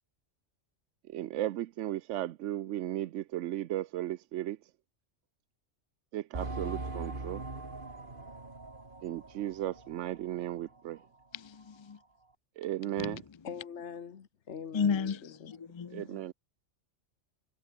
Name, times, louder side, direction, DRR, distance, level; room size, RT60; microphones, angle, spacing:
voice 1, 1.1-4.7 6.1-7.4 9.0-11.0 12.6-13.2 15.9-16.3, right 13 dB, 85° right, 0.9 m, -35 dB
sound 1, 6.3-10.6 10.9-11.0 11.6-11.7, right 3 dB, 45° right, 2.8 m, -41 dB
voice 2, 11.3-12.0 13.0-13.2 14.7-15.2 15.6-16.0, left 6 dB, 45° left, 0.4 m, -32 dB
voice 3, 13.4-15.6, left 7 dB, 70° left, 1.5 m, -43 dB
omnidirectional pair, 1.2 m